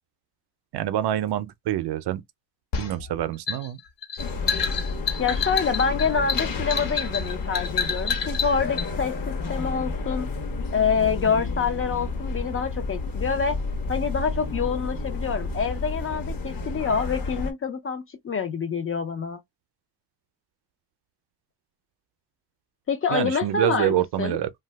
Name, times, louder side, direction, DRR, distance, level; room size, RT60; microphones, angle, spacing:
voice 1, 0.7-2.2 2.8-3.8 23.1-24.5, right 12 dB, 60° right, 0.5 m, -26 dB
sound 1, 2.7-8.9, left 6 dB, 70° left, 1.1 m, -28 dB
sound 2, 4.2-17.5, left 3 dB, 50° left, 0.9 m, -31 dB
voice 2, 5.2-10.3 10.7-13.6 13.9-19.4 22.9-24.4, left 6 dB, 30° left, 0.4 m, -26 dB
2.7 x 2.3 x 3.2 m
cardioid pair, 140°, 45 cm